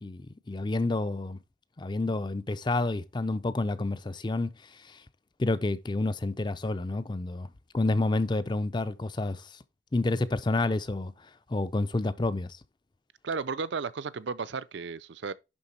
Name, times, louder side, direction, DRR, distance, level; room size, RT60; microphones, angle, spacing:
voice 1, 0.0-1.4 1.8-5.0 5.4-7.5 7.7-9.6 9.9-12.6, left 2 dB, 25° left, 0.4 m, -29 dB
voice 2, 13.2-15.3, right 5 dB, 70° right, 0.5 m, -34 dB
11.0 x 3.9 x 4.2 m
head